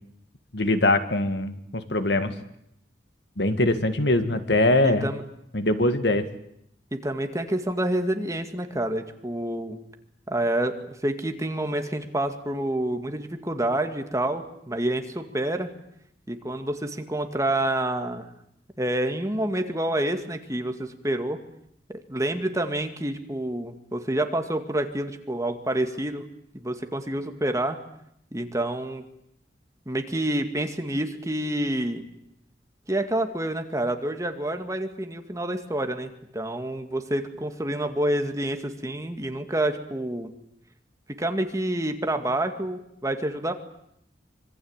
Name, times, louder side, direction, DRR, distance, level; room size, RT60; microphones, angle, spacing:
voice 1, 0.5-2.3 3.4-5.1 5.5-6.3, left 2 dB, 65° left, 9 dB, 1.9 m, -22 dB
voice 2, 4.8-5.2 6.9-9.8 10.3-15.7 16.3-18.3 18.8-21.4 21.9-26.3 26.5-27.8 28.3-29.0 29.9-32.0 32.9-40.3 41.2-43.5, right 1 dB, 20° right, 6 dB, 2.1 m, -28 dB
25.5 x 23.5 x 8.9 m, 0.75 s
head